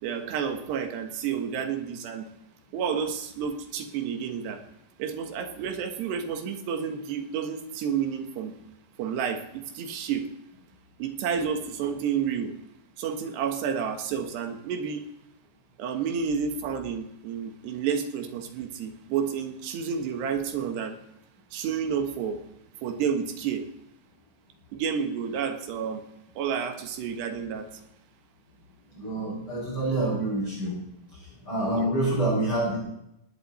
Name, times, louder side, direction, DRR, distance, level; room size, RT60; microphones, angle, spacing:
voice 1, 0.0-2.3 2.7-4.6 5.0-8.5 9.0-10.3 11.0-12.5 13.0-15.0 15.8-21.0 21.5-22.4 22.8-23.7 24.7-26.0 26.4-27.7 31.7-32.0, right 7 dB, 70° right, 6 dB, 3.4 m, -30 dB
voice 2, 28.9-30.7 31.1-32.8, right 2 dB, 25° left, -5 dB, 7.7 m, -27 dB
19.5 x 17.5 x 4.3 m, 0.80 s
omnidirectional pair, 5.3 m